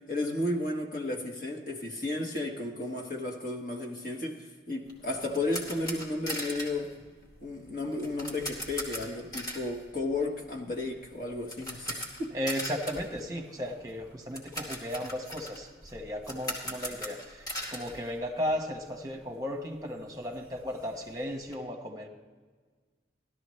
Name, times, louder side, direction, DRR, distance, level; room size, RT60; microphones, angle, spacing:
voice 1, 0.1-6.9 7.4-12.3, left 2 dB, 50° left, 1.5 m, -33 dB
sound 1, 4.9-18.8 19.1-19.2 19.7-19.8 20.0-21.5, equal, 20° left, 2.1 m, -41 dB
voice 2, 12.3-22.1, equal, 20° right, 1.1 m, -35 dB
16.0 x 12.5 x 3.2 m
head